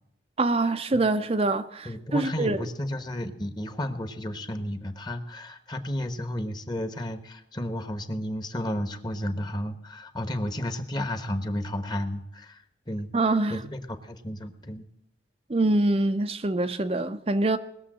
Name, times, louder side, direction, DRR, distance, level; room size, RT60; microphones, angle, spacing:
voice 1, 0.4-2.7 13.1-13.6 15.5-17.6, right 2 dB, 35° right, 0.5 m, -25 dB
voice 2, 1.8-13.1 13.5-14.9, left 1 dB, 25° left, 1.1 m, -32 dB
20.0 x 7.1 x 7.5 m
head